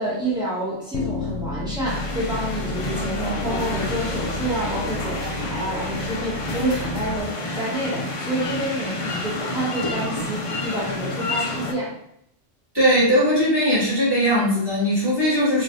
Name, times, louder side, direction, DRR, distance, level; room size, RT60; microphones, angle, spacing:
voice 1, 0.0-12.0, right 1 dB, 5° right, -8 dB, 1.1 m, -28 dB
sound 1, 0.9-7.2, left 1 dB, 85° left, 0.9 m, -33 dB
sound 2, 1.8-11.7, left 2 dB, 60° left, 0.3 m, -29 dB
voice 2, 12.7-15.6, equal, 20° right, -9 dB, 1.6 m, -19 dB
3.1 x 2.7 x 2.5 m, 0.73 s
omnidirectional pair, 1.1 m